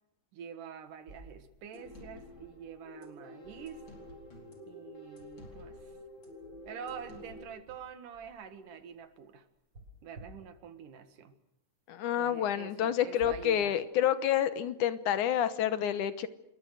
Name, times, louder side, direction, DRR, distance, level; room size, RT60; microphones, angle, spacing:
voice 1, 0.3-3.8 4.7-5.9 6.7-9.5 10.0-11.3 12.2-13.8, right 8 dB, 85° right, 10 dB, 3.3 m, -46 dB
sound 1, 0.9-3.2 4.1-4.4 4.7-7.1 7.6-9.1 9.7-10.8 13.2-13.4, equal, 35° right, 6.6 m, -55 dB
sound 2, 1.7-7.4, left 1 dB, 35° left, 5.0 m, -49 dB
voice 2, 11.9-16.3, left 10 dB, 80° left, 13 dB, 2.5 m, -29 dB
27.0 x 22.0 x 6.5 m, 0.83 s
omnidirectional pair, 3.6 m